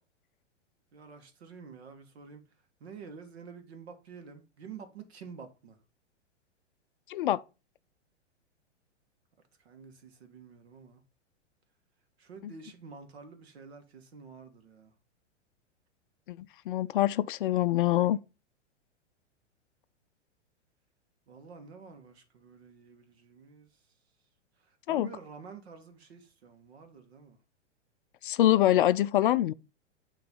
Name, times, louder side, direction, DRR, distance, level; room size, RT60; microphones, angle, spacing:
voice 1, 0.9-2.4 2.8-5.8 9.6-11.0 12.2-14.9 21.3-23.8 24.6-27.4, right 5 dB, 60° right, 1.8 m, -49 dB
voice 2, 7.1-7.4 12.4-12.5 16.3-18.2 24.9-25.1 28.2-29.5, left 13 dB, 45° left, 0.5 m, -25 dB
9.4 x 3.3 x 5.4 m
figure-of-eight pair, 105°, 36 cm